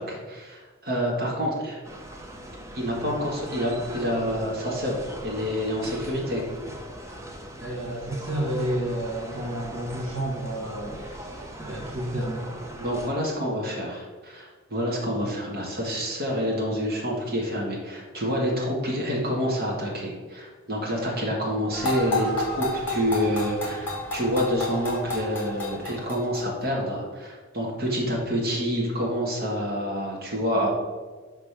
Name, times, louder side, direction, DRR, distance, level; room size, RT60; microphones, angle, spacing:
voice 1, 0.0-1.8 2.7-6.5 12.8-30.7, equal, 45° right, -2 dB, 1.9 m, -28 dB
sound 1, 1.8-13.1, right 1 dB, 15° right, 0.8 m, -40 dB
voice 2, 7.6-12.5, right 1 dB, 70° right, -3 dB, 1.6 m, -31 dB
sound 2, 21.7-26.6, left 1 dB, 10° left, 2.1 m, -30 dB
5.8 x 5.2 x 5.9 m, 1.4 s
head